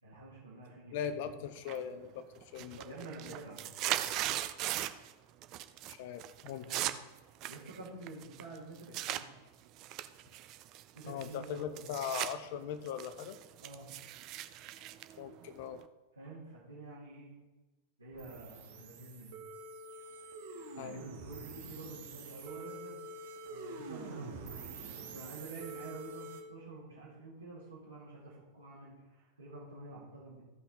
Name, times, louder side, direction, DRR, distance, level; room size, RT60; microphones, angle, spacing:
voice 1, 0.0-1.4 2.6-4.1 6.5-6.9 7.4-9.3 10.9-11.9 13.6-13.9 16.2-17.4 18.0-19.4 20.7-23.0 23.4-30.4, right 2 dB, 85° right, -10 dB, 2.6 m, -49 dB
voice 2, 0.9-2.8 5.9-6.7 11.1-13.4 15.2-15.8 20.8-21.0, left 8 dB, 50° left, 11 dB, 0.6 m, -40 dB
sound 1, 1.7-2.1 2.4-5.1 5.4-5.9 6.2-9.2 9.8-12.3 12.7-15.9, right 13 dB, 40° right, 0.5 m, -39 dB
sound 2, 18.1-26.4, right 3 dB, 55° right, 1.4 m, -46 dB
15.0 x 5.6 x 4.2 m, 1.1 s
figure-of-eight pair, 90°, 0 cm